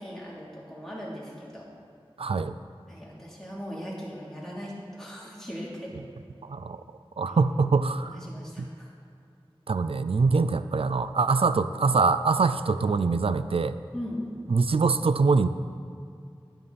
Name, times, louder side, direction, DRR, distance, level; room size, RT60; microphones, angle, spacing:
voice 1, 0.0-1.6 2.9-6.0 7.3-7.4 8.0-8.9 13.9-14.2, equal, 5° left, -6 dB, 3.1 m, -39 dB
voice 2, 2.2-2.5 6.4-6.8 7.2-8.2 8.6-8.7 9.7-13.8 14.5-15.5, right 4 dB, 75° right, 12 dB, 0.4 m, -24 dB
11.0 x 10.0 x 4.2 m, 2.4 s
wide cardioid pair, 45°, 10 cm